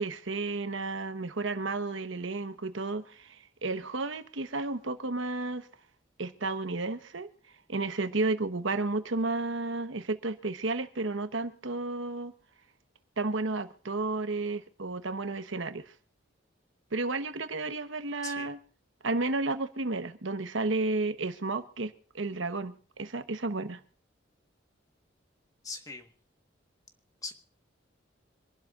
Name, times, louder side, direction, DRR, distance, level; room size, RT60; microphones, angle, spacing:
voice 1, 0.0-5.7 6.2-7.3 7.7-12.3 13.2-15.9 16.9-18.6 19.0-23.8, right 3 dB, 75° right, 1.1 m, -32 dB
voice 2, 25.6-26.1 27.2-27.3, left 3 dB, 20° left, 1.4 m, -40 dB
26.5 x 12.0 x 2.5 m
head